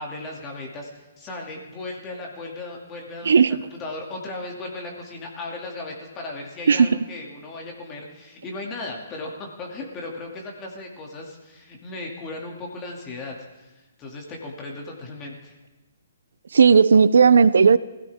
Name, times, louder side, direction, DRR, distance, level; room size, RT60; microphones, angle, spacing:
voice 1, 0.0-3.3 3.8-13.7 14.0-15.6, left 2 dB, 15° left, 0 dB, 2.5 m, -36 dB
voice 2, 3.3-3.6 6.7-7.0 16.5-17.8, right 6 dB, 75° right, 17 dB, 0.5 m, -14 dB
21.0 x 16.0 x 3.6 m, 1.1 s
hypercardioid pair, 165°, 0 cm